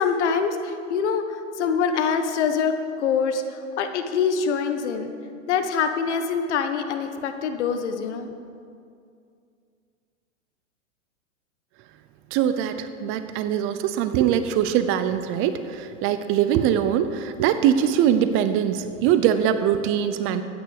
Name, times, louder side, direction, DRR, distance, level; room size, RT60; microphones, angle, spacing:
voice 1, 0.0-5.1 5.5-8.3, left 6 dB, 65° left, 7 dB, 1.5 m, -25 dB
voice 2, 12.3-20.4, right 9 dB, 35° right, 11 dB, 0.7 m, -22 dB
14.0 x 9.5 x 6.6 m, 2.4 s
hypercardioid pair, 120°, 38 cm